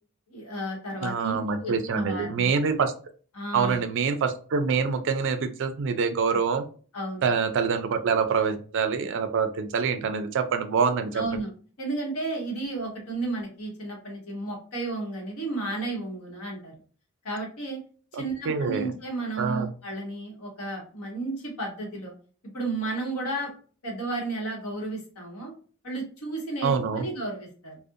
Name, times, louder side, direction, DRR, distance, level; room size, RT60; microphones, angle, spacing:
voice 1, 0.3-2.5 3.3-3.9 6.3-6.4 6.9-7.3 11.1-11.5 11.8-16.7 17.2-17.8 18.1-22.1 22.5-23.5 23.8-25.5 25.8-27.8, right 2 dB, 75° left, -1 dB, 1.0 m, -33 dB
voice 2, 1.0-2.9 3.5-6.7 7.2-11.2 18.1-18.9 19.4-19.7 26.6-27.1, right 5 dB, 55° right, 9 dB, 0.3 m, -25 dB
2.4 x 2.0 x 2.6 m, 0.41 s
head